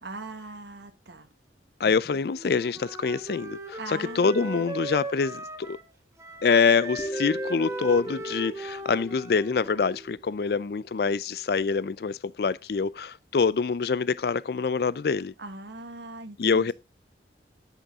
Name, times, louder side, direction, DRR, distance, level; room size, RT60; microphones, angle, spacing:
voice 1, 0.0-1.3 1.8-2.2 3.8-4.6 15.4-16.7, right 2 dB, 85° right, 1.4 m, -41 dB
voice 2, 1.8-5.8 6.4-15.3 16.4-16.7, left 5 dB, 60° left, 0.4 m, -25 dB
Wind instrument woodwind instrument, 2.3-5.9 6.2-10.1, right 1 dB, 15° right, 1.6 m, -38 dB
sound 1, 7.0-11.0, right 1 dB, 25° left, 2.7 m, -39 dB
10.0 x 8.3 x 3.6 m
head